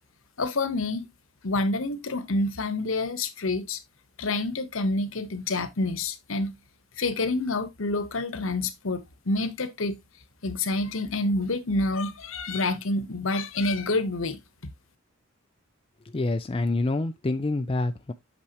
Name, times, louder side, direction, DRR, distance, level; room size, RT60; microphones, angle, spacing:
voice 1, 0.4-1.1 1.4-3.8 4.2-6.6 7.0-10.0 10.4-14.4, left 2 dB, 70° left, 1.0 m, -28 dB
voice 2, 16.1-18.1, left 2 dB, 25° left, 0.4 m, -27 dB
8.6 x 6.0 x 2.9 m
head